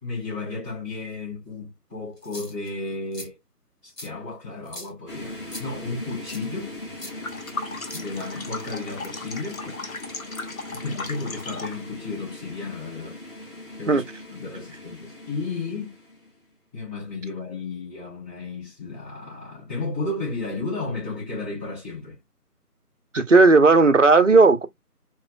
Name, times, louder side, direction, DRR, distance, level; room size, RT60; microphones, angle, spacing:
voice 1, 0.0-3.4 3.8-6.8 7.9-9.8 10.7-13.2 13.8-14.0 14.3-15.9 16.7-22.2, left 3 dB, 10° left, 2.3 m, -33 dB
sound 1, 2.2-2.7 3.1-3.3 4.0-4.1 4.7-4.9 5.5-5.7 6.3-6.5 7.0-7.1 7.9-8.5, left 1 dB, 85° left, 1.8 m, -40 dB
sound 2, 5.1-16.4, left 1 dB, 35° left, 2.6 m, -40 dB
sound 3, 7.1-11.9, left 3 dB, 60° left, 0.9 m, -36 dB
voice 2, 23.1-24.7, right 3 dB, 50° right, 0.6 m, -15 dB
4.4 x 3.0 x 2.3 m
figure-of-eight pair, 160°, 47 cm